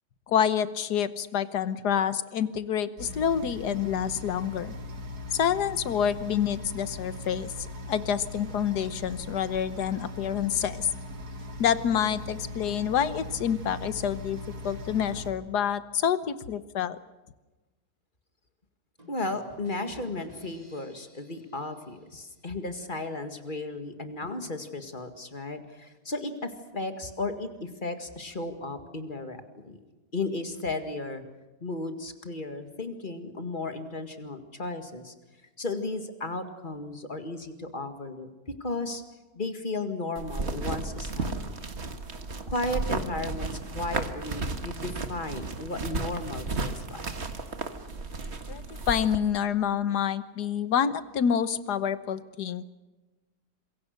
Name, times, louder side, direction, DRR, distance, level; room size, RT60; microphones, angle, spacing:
voice 1, 0.3-4.7 5.3-7.5 7.9-10.9 11.6-17.0 48.5-52.6, left 8 dB, 75° left, 14 dB, 1.6 m, -27 dB
sound 1, 3.0-15.3, left 2 dB, 65° right, 2.6 m, -40 dB
sound 2, 19.0-22.7, right 1 dB, 20° right, 4.0 m, -55 dB
voice 2, 19.1-29.8 30.1-31.2 31.6-35.1 35.6-38.3 38.6-39.0 39.3-41.3 41.6-41.7 42.5-47.1, left 2 dB, 30° left, 7 dB, 2.1 m, -34 dB
sound 3, 40.2-49.2, right 3 dB, 40° right, 1.8 m, -34 dB
27.0 x 22.5 x 6.6 m, 1.1 s
omnidirectional pair, 1.8 m